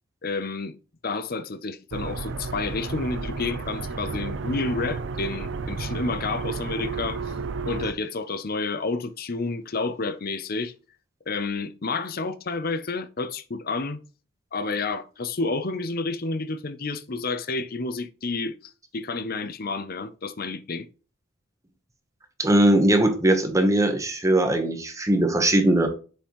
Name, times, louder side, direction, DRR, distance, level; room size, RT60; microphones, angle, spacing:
voice 1, 0.2-0.8 1.0-7.3 7.7-10.7 11.3-14.0 14.5-18.5 18.9-20.9, left 3 dB, 45° left, 0.7 m, -30 dB
sound 1, 1.9-7.9, right 4 dB, 60° right, 0.6 m, -32 dB
voice 2, 22.4-25.9, right 1 dB, 15° right, 1.0 m, -20 dB
7.3 x 5.4 x 3.0 m
head